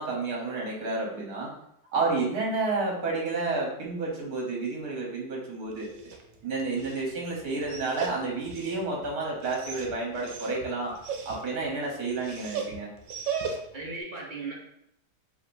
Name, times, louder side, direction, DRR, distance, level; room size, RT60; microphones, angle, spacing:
voice 1, 0.0-1.5 1.9-5.9 6.4-10.9 11.2-12.9, right 3 dB, 65° right, -2 dB, 1.6 m, -30 dB
Dog, 5.6-13.9, right 5 dB, 85° right, 1.3 m, -38 dB
voice 2, 13.4-14.5, right 3 dB, 45° right, -4 dB, 0.6 m, -38 dB
4.9 x 3.1 x 2.6 m, 0.75 s
omnidirectional pair, 1.8 m